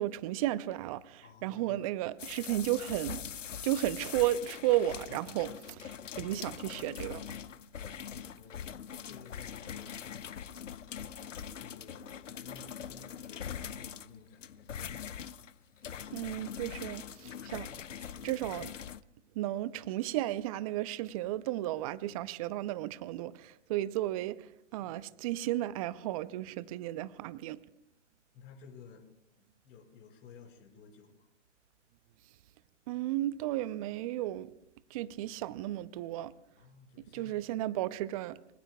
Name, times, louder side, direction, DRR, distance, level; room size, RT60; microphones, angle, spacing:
voice 1, 0.0-3.2 3.6-5.5 5.8-7.2 16.1-17.7 18.2-18.7 19.4-24.4 24.7-27.6 32.9-34.5 34.9-36.3 37.1-38.6, right 14 dB, 30° right, 0.6 m, -33 dB
voice 2, 1.2-1.8 5.1-5.2 8.3-8.7 9.0-10.0 11.6-15.1 24.8-25.2 28.3-29.1 29.6-31.3 36.5-37.7, left 5 dB, 30° left, 5.3 m, -55 dB
sound 1, 2.2-19.0, left 8 dB, 80° left, 0.8 m, -43 dB
25.0 x 24.5 x 2.3 m
hypercardioid pair, 130°, 37 cm